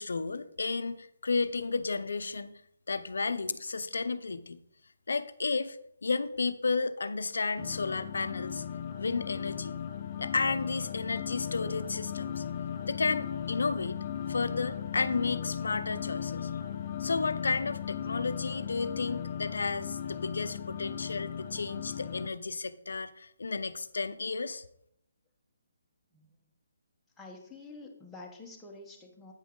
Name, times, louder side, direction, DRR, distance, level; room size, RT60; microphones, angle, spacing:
voice 1, 0.0-2.5 2.9-4.6 5.1-8.6 9.0-9.8 10.2-12.4 12.9-14.0 14.3-16.5 17.0-24.6, left 4 dB, 80° left, 13 dB, 0.6 m, -32 dB
sound 1, 7.6-22.3, left 9 dB, 30° left, 0.5 m, -37 dB
voice 2, 27.2-29.3, left 3 dB, 5° left, -2 dB, 1.1 m, -48 dB
8.8 x 5.3 x 3.8 m, 0.72 s
hypercardioid pair, 160°, 0 cm